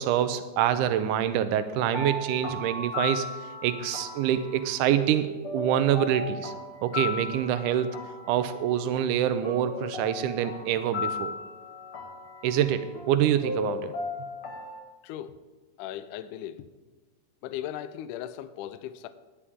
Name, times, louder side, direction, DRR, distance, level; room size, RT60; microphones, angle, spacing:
voice 1, 0.0-3.3 3.6-6.5 6.8-8.0 8.3-11.3 12.4-13.9, right 10 dB, 85° right, 10 dB, 1.8 m, -26 dB
sound 1, 1.7-14.8, left 3 dB, 55° left, 1.6 m, -36 dB
voice 2, 15.0-15.4 15.8-16.7 17.4-19.1, left 11 dB, 90° left, 12 dB, 1.8 m, -37 dB
18.0 x 10.0 x 3.7 m, 1.2 s
omnidirectional pair, 4.3 m